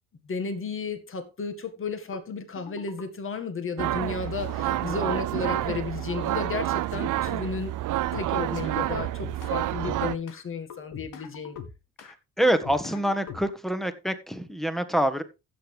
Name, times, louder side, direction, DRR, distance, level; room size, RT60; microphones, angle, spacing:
voice 1, 0.3-7.7 8.1-11.6, left 4 dB, 35° left, 1.9 m, -33 dB
sound 1, 2.1-2.2 2.6-3.1 3.8-3.9 4.3-4.8 5.6-5.7 6.0-6.5 7.1-7.4 8.1-8.7 9.0-10.4 10.7-12.1 12.4-13.7, left 7 dB, 70° left, 1.7 m, -42 dB
sound 2, 3.8-10.2, right 15 dB, 65° right, 0.6 m, -29 dB
voice 2, 12.0-15.2, right 1 dB, ahead, 1.4 m, -26 dB
15.0 x 6.7 x 3.4 m
cardioid pair, 85°, 34 cm